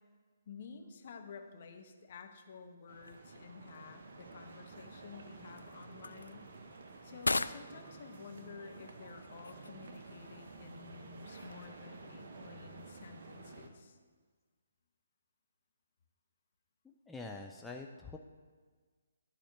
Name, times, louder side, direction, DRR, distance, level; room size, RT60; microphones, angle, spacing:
voice 1, 0.5-6.5 7.0-14.0, left 5 dB, 45° left, 5 dB, 1.1 m, -52 dB
sound 1, 2.9-12.1, left 3 dB, 75° left, 0.3 m, -43 dB
sound 2, 2.9-13.7, right 3 dB, 50° right, 1.1 m, -52 dB
voice 2, 16.8-18.2, left 3 dB, 5° left, 1 dB, 0.5 m, -46 dB
11.5 x 4.3 x 7.9 m, 1.5 s
figure-of-eight pair, 135°, 0 cm